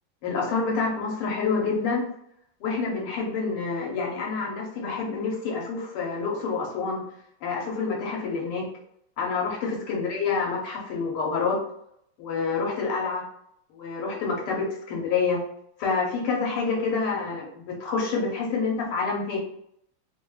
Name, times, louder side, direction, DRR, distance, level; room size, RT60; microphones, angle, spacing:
voice 1, 0.2-2.1 2.6-7.1 7.4-8.7 9.2-11.6 12.2-13.3 13.7-15.4 15.8-19.4, left 4 dB, 85° left, -2 dB, 1.8 m, -27 dB
3.8 x 2.3 x 3.3 m, 0.72 s
omnidirectional pair, 2.4 m